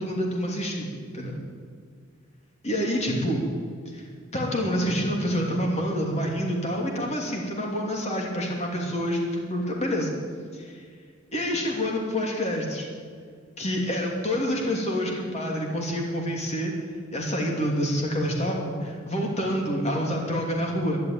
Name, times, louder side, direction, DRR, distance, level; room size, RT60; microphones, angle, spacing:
voice 1, 0.0-1.4 2.6-3.5 3.9-4.0 4.3-10.1 10.5-10.8 11.3-12.9 13.6-16.7 17.1-21.0, equal, 35° left, 0 dB, 2.8 m, -27 dB
12.0 x 11.5 x 9.3 m, 2.1 s
head